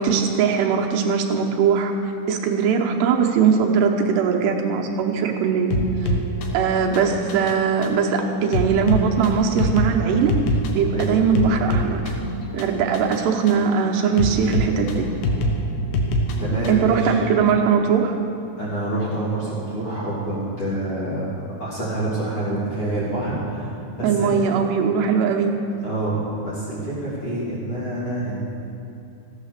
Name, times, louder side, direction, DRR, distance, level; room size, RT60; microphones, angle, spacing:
voice 1, 0.0-1.9 2.3-5.8 6.5-10.4 10.7-12.2 12.5-15.1 16.7-18.2 24.0-25.6, right 6 dB, 80° right, 1 dB, 3.1 m, -20 dB
sound 1, 5.7-16.9, equal, 80° left, 3.4 m, -25 dB
voice 2, 16.4-17.1 18.6-24.4 25.8-28.4, right 1 dB, 35° left, -9 dB, 3.4 m, -27 dB
15.0 x 9.8 x 6.7 m, 2.6 s
omnidirectional pair, 4.9 m